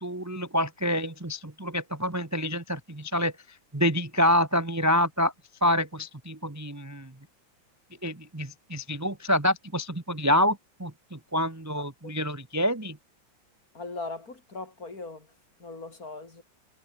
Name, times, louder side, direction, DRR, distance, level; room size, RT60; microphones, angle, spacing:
voice 1, 0.0-3.3 3.7-5.3 5.6-7.1 8.0-13.0, equal, 10° right, 1.2 m, -27 dB
voice 2, 11.7-12.1 13.7-15.3 15.6-16.4, left 3 dB, 45° left, 4.4 m, -39 dB
omnidirectional pair, 2.1 m